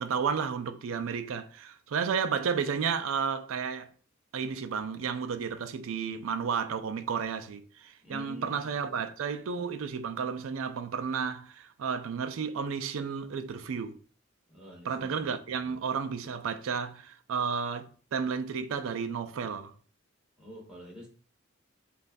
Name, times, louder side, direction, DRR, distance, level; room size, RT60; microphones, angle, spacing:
voice 1, 0.0-3.9 4.3-14.0 14.8-19.7, right 6 dB, 70° right, 0.4 m, -32 dB
voice 2, 8.0-8.7 14.5-15.8 20.4-21.1, left 1 dB, 5° right, 1.4 m, -48 dB
5.2 x 2.4 x 2.5 m
head